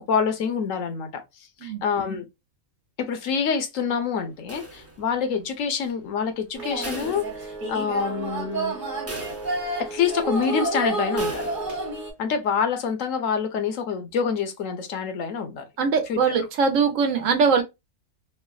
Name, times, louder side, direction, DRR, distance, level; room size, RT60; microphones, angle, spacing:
voice 1, 0.0-2.2 3.0-8.8 9.9-11.5 12.2-15.6 16.1-16.2, left 6 dB, 70° left, 1.0 m, -26 dB
sound 1, 4.5-5.3 6.8-7.9 8.3-8.4 9.1-10.0 11.2-11.9, right 2 dB, 20° right, 0.3 m, -39 dB
sound 2, 6.6-12.1, right 2 dB, 40° right, 1.2 m, -29 dB
voice 2, 15.8-17.6, right 5 dB, 70° right, 1.0 m, -21 dB
3.2 x 2.0 x 2.2 m
omnidirectional pair, 1.5 m